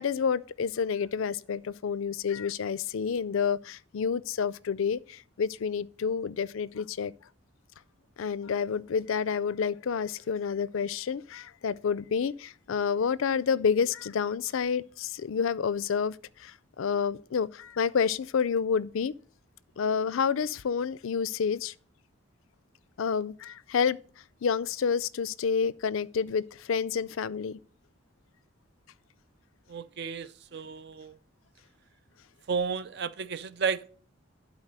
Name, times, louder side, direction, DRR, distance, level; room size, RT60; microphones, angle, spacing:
voice 1, 0.0-7.1 8.2-19.1 19.8-21.7 23.0-24.0 24.4-27.6, left 6 dB, 75° left, 0.4 m, -29 dB
voice 2, 29.7-31.1 32.5-33.9, right 5 dB, 50° right, 0.5 m, -32 dB
11.5 x 4.1 x 6.5 m
head